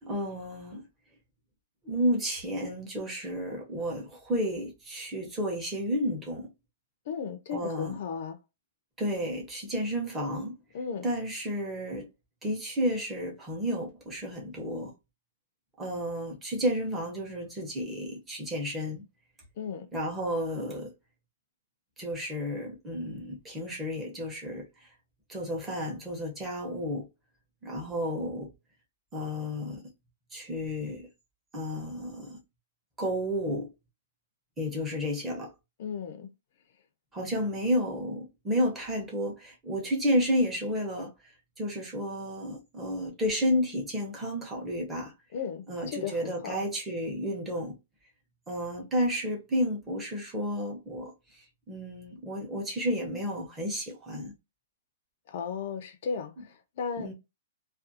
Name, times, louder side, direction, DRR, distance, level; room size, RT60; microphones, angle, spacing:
voice 1, 0.0-0.8 1.8-6.5 7.5-8.0 9.0-10.6 11.0-12.1 12.4-14.9 15.8-19.0 19.9-20.9 22.0-24.9 25.3-27.1 27.6-28.5 29.1-29.8 30.3-31.1 31.5-32.4 33.0-33.7 34.6-35.5 37.1-41.1 41.6-45.1 45.7-47.8 48.5-54.3 57.0-57.1, equal, 10° right, 0.7 m, -31 dB
voice 2, 7.1-8.4 10.7-11.1 19.6-19.9 35.8-36.3 45.3-46.6 55.3-57.1, left 6 dB, 45° left, 0.4 m, -35 dB
2.4 x 2.3 x 2.6 m
hypercardioid pair, 175°, 0 cm